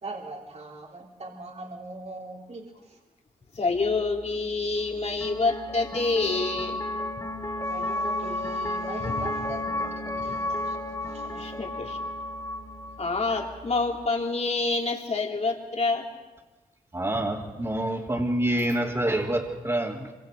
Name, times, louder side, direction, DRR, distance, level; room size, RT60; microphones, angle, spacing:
voice 1, 0.0-3.0 7.7-10.8 11.1-11.5, right 2 dB, 50° right, -1 dB, 3.4 m, -41 dB
voice 2, 3.5-6.8 9.1-9.2 11.3-12.0 13.0-16.1, left 3 dB, 50° left, 1 dB, 3.5 m, -27 dB
sound 1, 3.7-14.1, left 1 dB, 25° left, 3.3 m, -33 dB
voice 3, 16.9-20.1, right 1 dB, 25° right, -5 dB, 3.2 m, -27 dB
26.0 x 25.5 x 5.1 m, 1.2 s
cardioid pair, 70°, 15 cm